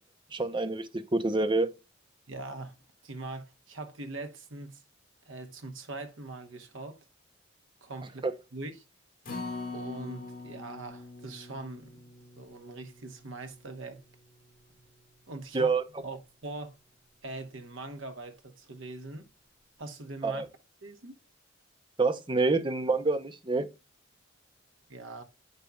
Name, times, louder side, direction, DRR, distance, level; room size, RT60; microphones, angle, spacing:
voice 1, 0.3-1.7 8.2-8.3 15.5-15.8 20.2-20.5 22.0-23.7, right 3 dB, 25° right, 0.6 m, -27 dB
voice 2, 2.3-2.7 3.0-4.8 5.3-7.0 7.8-8.2 8.5-8.8 9.7-11.9 12.4-14.0 15.3-16.7 17.2-19.3 19.8-20.4 20.8-21.2 24.9-25.2, right 2 dB, 80° right, 1.0 m, -42 dB
Acoustic guitar, 9.2-15.6 16.0-16.1 16.5-16.6, left 3 dB, 45° left, 2.8 m, -44 dB
8.2 x 5.3 x 2.3 m
head